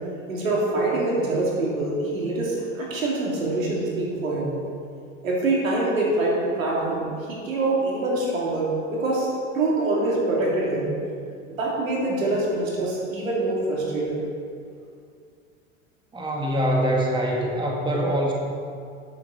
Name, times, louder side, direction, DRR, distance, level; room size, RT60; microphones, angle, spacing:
voice 1, 0.3-4.5 5.2-9.3 9.5-10.9 11.5-14.2, right 2 dB, 80° right, -4 dB, 3.1 m, -25 dB
voice 2, 16.1-18.3, equal, 10° right, -1 dB, 1.7 m, -24 dB
12.5 x 8.3 x 4.2 m, 2.3 s
hypercardioid pair, 85°, 40 cm